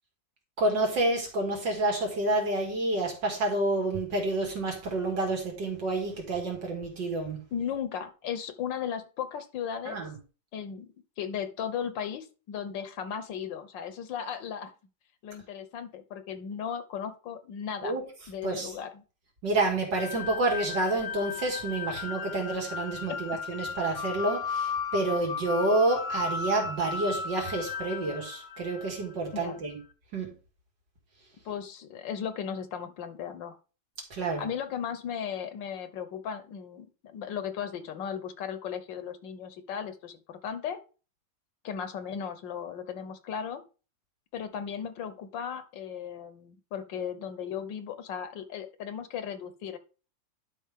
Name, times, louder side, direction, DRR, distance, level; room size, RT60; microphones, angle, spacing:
voice 1, 0.6-7.4 9.9-10.1 17.8-18.0 18.4-18.7 19.4-29.8 30.1-30.3 34.1-34.5, right 2 dB, 65° right, 1 dB, 3.0 m, -29 dB
voice 2, 7.5-10.0 10.5-14.7 15.2-17.9 18.3-19.0 23.1-23.2 29.3-29.6 31.4-33.6 34.4-40.8 41.6-43.6 44.3-49.8, left 8 dB, 75° left, 10 dB, 1.6 m, -36 dB
sound 1, 19.9-29.1, left 5 dB, 55° left, 0.9 m, -35 dB
11.0 x 5.4 x 3.6 m, 0.35 s
omnidirectional pair, 2.1 m